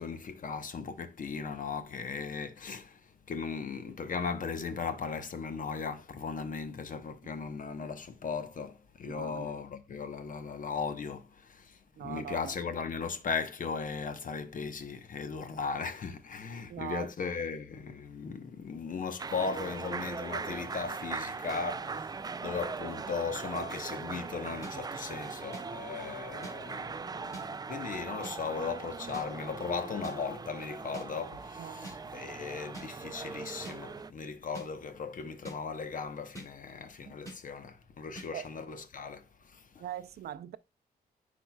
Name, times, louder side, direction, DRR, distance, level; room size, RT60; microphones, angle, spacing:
voice 1, 0.0-22.1 22.4-39.8, left 5 dB, 55° left, 0.9 m, -37 dB
voice 2, 9.0-9.6 12.0-12.5 16.7-17.1 31.6-31.9 37.1-37.2 38.3-38.5 39.8-40.6, right 11 dB, 80° right, 0.5 m, -41 dB
sound 1, 19.2-34.1, right 4 dB, 25° right, 0.4 m, -40 dB
sound 2, 24.6-24.7 25.5-25.6 26.4-26.5 27.3-27.5 28.2-28.4 29.1-29.3 30.0-30.2 30.9-31.1 31.8-32.0 32.7-32.9 33.6-33.8 34.5-34.7 35.4-35.6 36.3-36.5 37.3-37.4 38.2-38.3, right 2 dB, 20° left, 3.1 m, -44 dB
9.9 x 4.4 x 2.2 m
cardioid pair, 85°, 16 cm